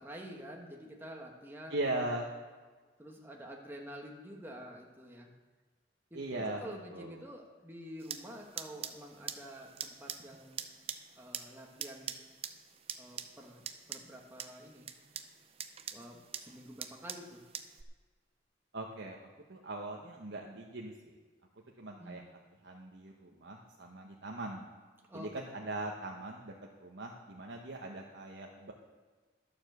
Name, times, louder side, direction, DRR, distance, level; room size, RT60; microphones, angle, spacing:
voice 1, 0.0-1.7 3.0-5.3 6.1-10.6 11.2-12.1 13.0-14.9 15.9-17.4 22.0-22.2 25.1-25.3, equal, 15° right, -1 dB, 1.3 m, -48 dB
voice 2, 1.7-2.3 6.1-7.2 18.7-19.2 19.5-21.2 21.8-22.2 22.6-24.7 25.1-26.5 26.8-28.7, right 2 dB, 75° right, -1 dB, 1.1 m, -40 dB
sound 1, 8.0-17.8, right 8 dB, 35° right, 0.6 m, -45 dB
11.5 x 7.1 x 6.7 m, 1.4 s
head